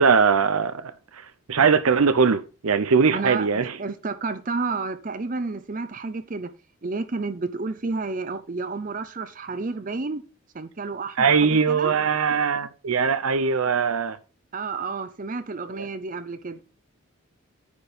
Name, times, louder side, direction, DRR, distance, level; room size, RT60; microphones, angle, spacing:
voice 1, 0.0-3.8 11.2-14.2 15.7-15.9, right 5 dB, 90° right, 0.7 m, -21 dB
voice 2, 3.1-3.5 3.8-6.5 6.8-10.2 10.5-11.9 14.5-16.6, right 3 dB, 40° right, 0.6 m, -30 dB
9.6 x 4.5 x 5.1 m
head